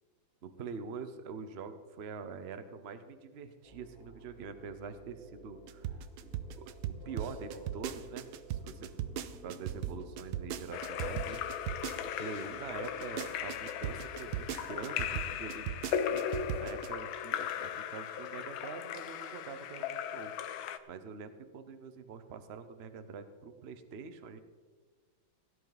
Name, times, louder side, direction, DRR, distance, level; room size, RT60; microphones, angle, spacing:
voice 1, 0.4-6.0 6.6-8.9 9.4-11.8 12.0-20.3 20.9-24.4, right 5 dB, 45° right, 10 dB, 0.8 m, -45 dB
sound 1, 3.6-14.2, equal, 40° left, 3.3 m, -53 dB
sound 2, 5.7-12.4 12.8-16.9, right 11 dB, 90° right, 1.5 m, -37 dB
Splash splatter / Drip / Trickle dribble, 10.7-20.8, left 9 dB, 80° left, 1.5 m, -37 dB
17.0 x 11.0 x 4.0 m, 1.5 s
omnidirectional pair, 2.2 m